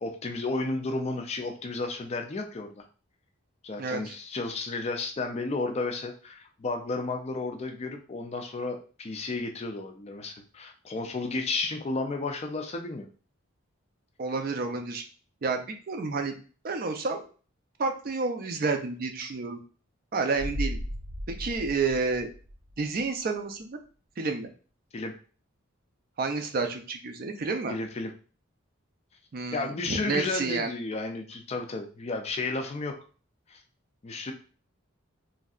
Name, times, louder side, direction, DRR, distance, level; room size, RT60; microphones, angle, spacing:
voice 1, 0.0-2.8 3.6-13.1 24.9-25.1 27.7-28.1 29.5-33.0 33.5-33.6 34.0-34.3, left 3 dB, 30° left, 4 dB, 0.4 m, -32 dB
voice 2, 3.8-4.2 14.2-15.0 15.4-15.6 15.9-16.4 16.6-17.2 17.8-19.6 20.1-20.8 21.3-22.3 22.8-23.8 24.2-24.5 26.2-27.7 29.3-30.7, right 4 dB, 45° right, 5 dB, 0.4 m, -30 dB
sound 1, 20.3-23.0 23.3-23.4, equal, 90° right, 0.6 m, -36 dB
3.1 x 2.6 x 2.4 m, 0.39 s
head